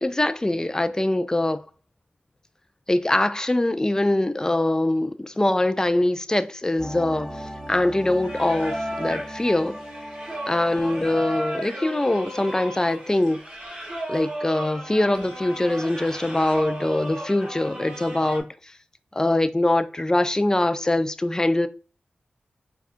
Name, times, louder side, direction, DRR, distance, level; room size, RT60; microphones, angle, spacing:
voice 1, 0.0-1.6 2.9-7.4 7.7-9.8 10.5-13.4 14.1-18.5 19.1-21.7, left 1 dB, 20° left, 0.4 m, -23 dB
sound 1, 6.8-12.4 12.7-12.8, equal, 10° right, 1.2 m, -38 dB
Singing, 8.2-18.4, equal, 30° right, 1.3 m, -35 dB
4.9 x 2.3 x 2.5 m
cardioid pair, 55°, 3 cm